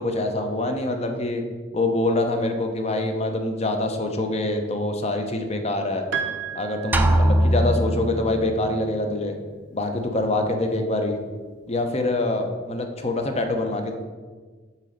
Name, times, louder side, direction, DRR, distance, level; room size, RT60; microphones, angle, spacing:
voice 1, 0.0-1.4 1.7-6.0 6.5-9.3 9.7-11.2 11.7-13.9, left 2 dB, 35° left, 5 dB, 0.8 m, -25 dB
Piano, 6.1-7.8, right 7 dB, 60° right, 0.8 m, -33 dB
sound 1, 6.9-8.8, right 1 dB, 10° right, 0.4 m, -21 dB
7.4 x 4.0 x 6.5 m, 1.4 s
head